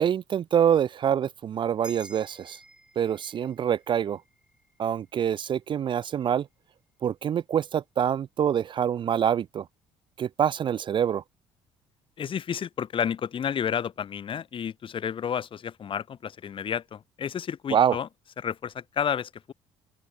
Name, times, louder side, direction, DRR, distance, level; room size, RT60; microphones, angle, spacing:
voice 1, 0.0-2.6 3.0-4.2 4.8-6.5 7.0-9.6 10.2-11.2 17.7-18.0, right 9 dB, 45° right, 0.5 m, -25 dB
sound 1, 1.8-6.5, right 1 dB, 10° right, 6.9 m, -51 dB
voice 2, 12.2-18.1 18.4-19.5, left 8 dB, 45° left, 4.4 m, -31 dB
open air
cardioid pair, 110°, 12 cm